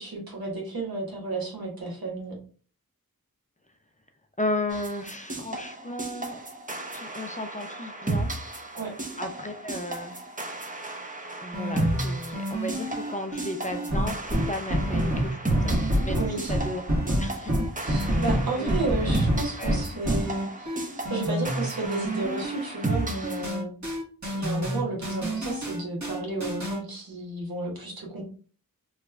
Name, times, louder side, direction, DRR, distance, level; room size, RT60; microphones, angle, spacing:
voice 1, 0.0-2.4 8.7-8.9 16.2-16.5 17.8-20.8 21.1-23.7 24.3-28.2, right 3 dB, 80° right, -2 dB, 1.2 m, -32 dB
voice 2, 4.4-6.4 6.9-8.3 9.2-10.2 11.4-15.7 16.0-16.2 16.5-16.8 17.2-18.2 18.6-19.2 19.6-19.8, left 1 dB, 20° left, 5 dB, 0.4 m, -34 dB
sound 1, 4.7-23.5, right 2 dB, 20° right, 0.6 m, -34 dB
sound 2, 11.5-26.8, equal, 50° right, 1.3 m, -28 dB
3.0 x 2.4 x 3.3 m, 0.41 s
wide cardioid pair, 70°, 36 cm